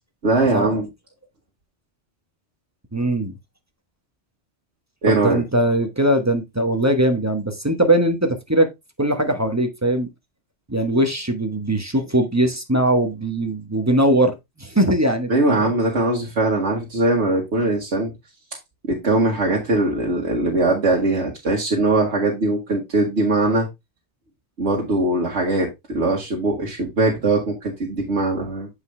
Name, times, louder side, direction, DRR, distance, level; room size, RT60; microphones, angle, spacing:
voice 1, 0.2-0.9 5.0-5.4 15.3-18.1 18.8-23.7 24.6-28.7, right 2 dB, 80° right, 1.8 m, -21 dB
voice 2, 2.9-3.4 5.1-8.7 9.0-10.1 10.7-15.3 15.6-15.7, right 1 dB, 15° right, 1.0 m, -20 dB
7.9 x 4.9 x 3.2 m
omnidirectional pair, 1.1 m